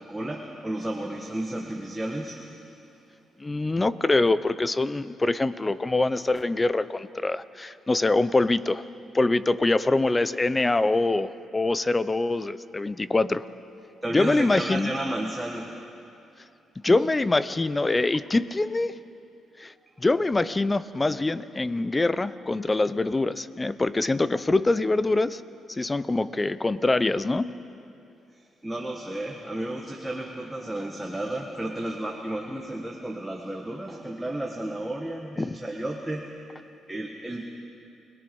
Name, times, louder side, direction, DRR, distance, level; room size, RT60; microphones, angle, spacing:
voice 1, 0.0-2.8 14.0-15.8 16.9-17.0 28.3-36.4 36.9-37.5, right 1 dB, 10° right, 0 dB, 1.7 m, -33 dB
voice 2, 3.4-8.8 9.1-13.4 14.1-14.9 16.8-18.9 19.6-25.4 25.7-27.6 35.4-35.6, left 2 dB, 20° left, 15 dB, 0.7 m, -24 dB
30.0 x 19.5 x 5.5 m, 2.6 s
cardioid pair, 90°, 0 cm